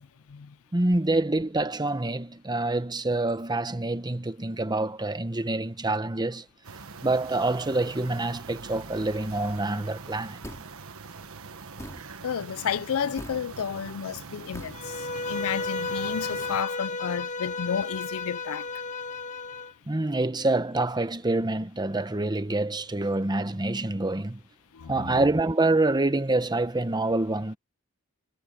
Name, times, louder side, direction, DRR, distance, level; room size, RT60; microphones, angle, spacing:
voice 1, 0.7-6.4 7.0-10.4 19.9-24.4 24.9-27.6, right 2 dB, 20° right, 1.0 m, -26 dB
sound 1, 6.6-16.6, right 4 dB, 65° right, 1.3 m, -43 dB
sound 2, 10.4-10.8 11.8-12.0 13.2-13.4 14.5-14.8, left 1 dB, 15° left, 2.8 m, -40 dB
voice 2, 12.2-18.7 24.7-25.1, left 7 dB, 70° left, 0.5 m, -32 dB
Bowed string instrument, 14.7-19.7, left 3 dB, 35° left, 1.8 m, -33 dB
head